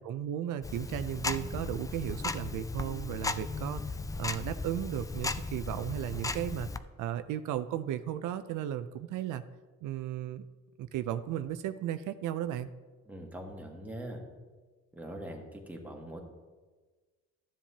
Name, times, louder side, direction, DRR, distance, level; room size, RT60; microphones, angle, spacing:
voice 1, 0.0-3.8 4.2-6.7 7.0-9.4 9.8-10.4 10.8-12.7, right 11 dB, 80° right, 11 dB, 0.5 m, -35 dB
Tick-tock, 0.6-6.8, left 3 dB, 10° left, 0.3 m, -36 dB
voice 2, 13.0-14.2 14.9-16.2, right 1 dB, 5° right, 0 dB, 1.5 m, -42 dB
13.0 x 7.3 x 2.8 m, 1.3 s
cardioid pair, 90°, 30 cm